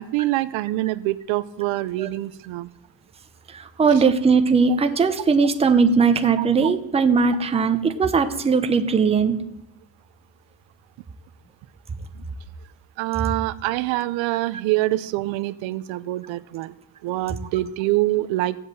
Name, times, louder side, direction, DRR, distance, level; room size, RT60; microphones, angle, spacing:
voice 1, 0.0-2.7 3.9-4.0 6.4-6.7 7.5-7.7 13.0-16.7 17.0-18.6, right 17 dB, 80° right, 15 dB, 0.7 m, -25 dB
voice 2, 3.8-9.3, right 5 dB, 15° right, 7 dB, 0.8 m, -19 dB
15.5 x 7.9 x 7.6 m, 0.82 s
cardioid pair, 165°, 46 cm